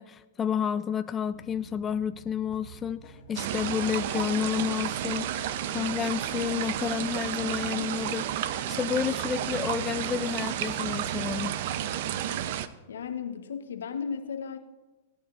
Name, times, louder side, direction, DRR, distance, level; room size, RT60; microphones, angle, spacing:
voice 1, 0.0-5.5 5.7-11.5, left 8 dB, 20° left, 12 dB, 0.3 m, -30 dB
sound 1, 1.2-7.6 8.0-8.6, right 1 dB, 85° right, 1.9 m, -54 dB
sound 2, 2.5-11.0, equal, 50° left, 1.4 m, -51 dB
sound 3, 3.4-12.7, right 10 dB, 60° right, 0.5 m, -31 dB
voice 2, 12.9-14.6, left 6 dB, 80° left, 7 dB, 1.0 m, -35 dB
18.5 x 9.2 x 2.5 m, 1.1 s
hypercardioid pair, 110°, 0 cm